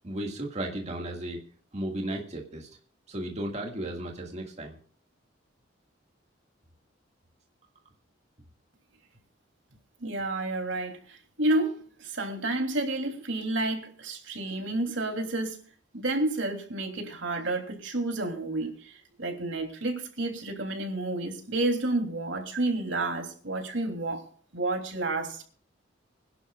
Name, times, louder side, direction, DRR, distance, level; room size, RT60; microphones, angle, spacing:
voice 1, 0.0-1.4 1.7-2.7 3.1-4.8, right 1 dB, 40° right, 1.9 m, -34 dB
voice 2, 10.0-15.6 15.9-24.3 24.5-25.4, right 2 dB, 80° right, 3.1 m, -30 dB
25.0 x 11.5 x 2.4 m
head